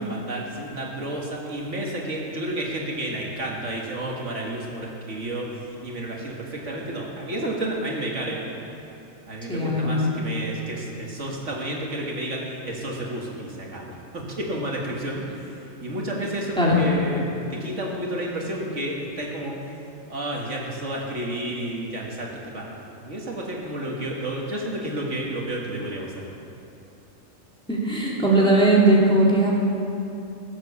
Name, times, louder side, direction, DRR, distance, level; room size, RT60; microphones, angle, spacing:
voice 1, 0.0-8.4 9.3-19.5 20.1-26.3, right 1 dB, 65° right, -2 dB, 2.1 m, -31 dB
voice 2, 9.5-10.1 16.6-16.8 27.7-29.5, right 1 dB, 5° left, -5 dB, 2.4 m, -19 dB
17.5 x 7.6 x 7.0 m, 2.8 s
omnidirectional pair, 1.4 m